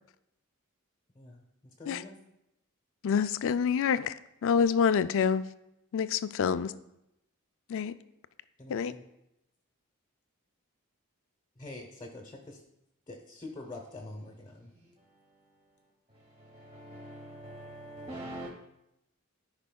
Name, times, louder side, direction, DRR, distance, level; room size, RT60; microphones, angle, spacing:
voice 1, 1.8-2.1 8.6-9.0 11.6-12.6 13.1-14.7, left 2 dB, 20° left, 0.8 m, -45 dB
voice 2, 3.0-4.1 4.4-5.5 5.9-6.7 7.7-7.9 8.7-8.9, left 7 dB, 60° left, 0.3 m, -27 dB
voice 3, 16.5-18.5, right 1 dB, 25° right, 1.0 m, -43 dB
14.0 x 5.2 x 2.3 m
head